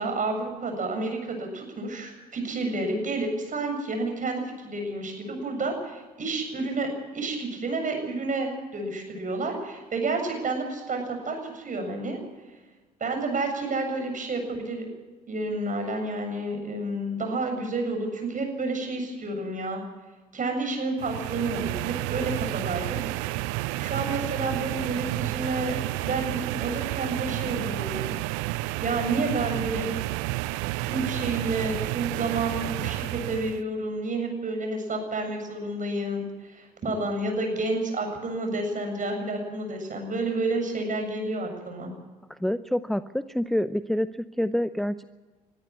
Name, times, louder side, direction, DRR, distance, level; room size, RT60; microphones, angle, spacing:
voice 1, 0.0-12.2 13.0-14.9 15.3-19.8 20.3-23.0 23.7-28.2 28.8-29.9 30.8-41.9, right 2 dB, 40° right, 4 dB, 7.3 m, -30 dB
sound 1, 21.0-33.6, right 18 dB, 70° right, 0.6 m, -31 dB
voice 2, 42.3-44.1 44.4-45.0, equal, ahead, 13 dB, 0.6 m, -27 dB
22.0 x 13.5 x 9.7 m, 1.3 s
hypercardioid pair, 50°, 20 cm